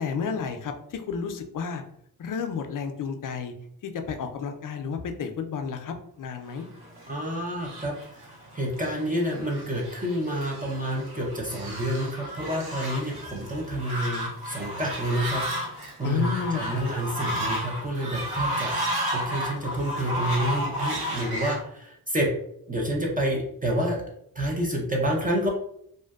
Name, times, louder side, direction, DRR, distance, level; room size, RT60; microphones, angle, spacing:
voice 1, 0.0-1.8 2.2-3.5 3.8-6.7 16.0-16.8, left 6 dB, 60° left, 6 dB, 0.4 m, -31 dB
Fowl, 6.8-21.6, equal, 85° right, 0.8 m, -33 dB
voice 2, 7.1-18.7 19.1-22.3 22.7-24.0 24.3-25.5, equal, 20° right, -2 dB, 0.5 m, -29 dB
2.5 x 2.1 x 2.3 m, 0.72 s
cardioid pair, 70°, 37 cm